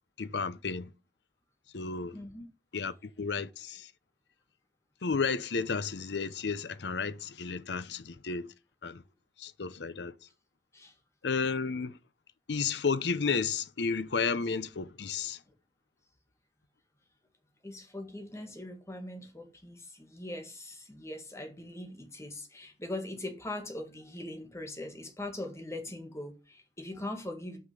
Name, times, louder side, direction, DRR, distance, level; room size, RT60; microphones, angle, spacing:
voice 1, 0.2-0.9 1.7-2.2 2.7-3.9 5.0-8.5 8.8-9.0 9.4-10.1 11.2-12.0 12.5-15.4, left 5 dB, 70° left, 0.7 m, -32 dB
voice 2, 2.1-2.5 10.7-10.9 17.6-27.6, left 1 dB, 15° left, 1.8 m, -41 dB
6.1 x 5.7 x 6.7 m
head